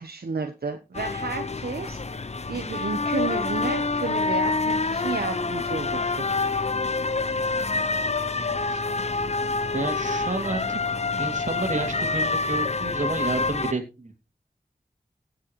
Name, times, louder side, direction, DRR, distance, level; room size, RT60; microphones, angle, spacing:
voice 1, 0.0-6.3, right 4 dB, 75° right, 5 dB, 1.1 m, -32 dB
sound 1, 0.9-13.7, left 3 dB, 45° left, 0.7 m, -27 dB
voice 2, 8.4-8.8 9.7-10.8 11.2-14.1, right 2 dB, 50° right, 5 dB, 2.6 m, -30 dB
16.0 x 7.6 x 3.1 m, 0.28 s
wide cardioid pair, 50°, 16 cm